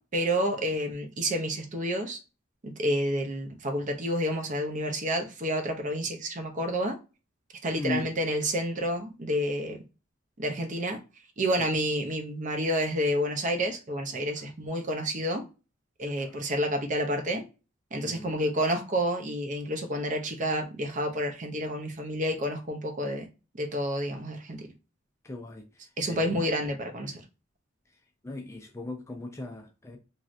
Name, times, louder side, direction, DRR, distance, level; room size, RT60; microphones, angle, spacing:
voice 1, 0.0-2.2 2.6-7.0 7.6-9.8 10.4-11.0 11.4-15.4 16.0-17.4 17.9-23.3 23.6-24.7 26.0-27.2, equal, 40° right, 0.6 m, -29 dB
voice 2, 7.8-8.1 11.6-11.7 16.0-16.4 18.0-18.3 25.2-26.4 28.2-30.0, left 2 dB, 15° left, 0.4 m, -38 dB
3.1 x 2.6 x 2.5 m
head